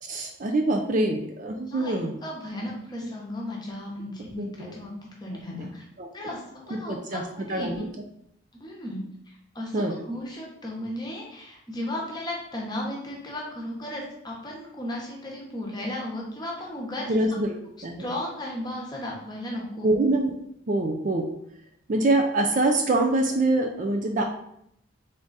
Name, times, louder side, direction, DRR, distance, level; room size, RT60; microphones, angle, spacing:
voice 1, 0.0-2.1 3.0-3.1 4.4-4.7 5.6-5.7 6.0-6.1 6.9-7.2 7.5-7.9 9.7-10.0 17.1-17.6 17.8-18.1 19.8-20.4 20.7-21.3 21.9-24.2, right 2 dB, 40° right, 3 dB, 0.4 m, -24 dB
voice 2, 1.7-5.8 6.1-7.9 8.6-9.0 9.3-17.2 18.0-19.9, left 1 dB, 20° left, -2 dB, 1.0 m, -35 dB
3.8 x 3.5 x 3.9 m, 0.74 s
head